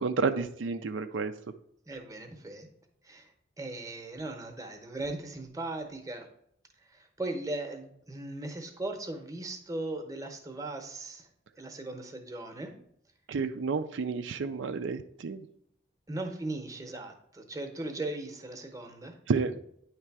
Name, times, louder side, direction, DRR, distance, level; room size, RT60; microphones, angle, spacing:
voice 1, 0.0-1.3 13.3-15.5 19.3-19.6, right 4 dB, 75° right, 9 dB, 0.4 m, -30 dB
voice 2, 1.9-2.7 3.0-6.3 6.8-11.3 11.6-12.7 16.1-19.2, right 2 dB, 15° right, 5 dB, 0.8 m, -38 dB
9.5 x 3.3 x 4.7 m, 0.71 s
head